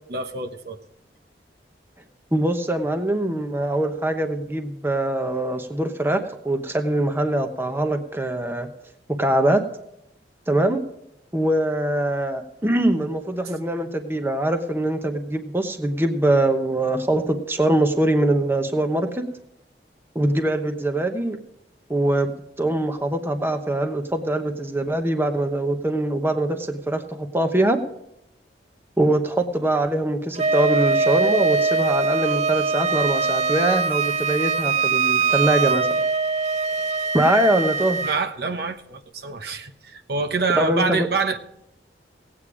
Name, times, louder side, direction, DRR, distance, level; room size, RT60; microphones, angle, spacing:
voice 1, 0.1-0.8 38.0-41.4, right 4 dB, 60° right, 5 dB, 1.0 m, -26 dB
voice 2, 2.3-8.7 9.2-9.6 10.5-10.8 11.3-19.2 20.1-21.4 21.9-22.3 22.6-27.8 29.0-35.9 37.1-38.0 40.6-41.1, right 1 dB, 15° right, 6 dB, 0.9 m, -23 dB
Wind instrument woodwind instrument, 30.4-38.2, right 4 dB, 40° right, 0.6 m, -22 dB
17.5 x 8.6 x 4.9 m, 0.84 s
head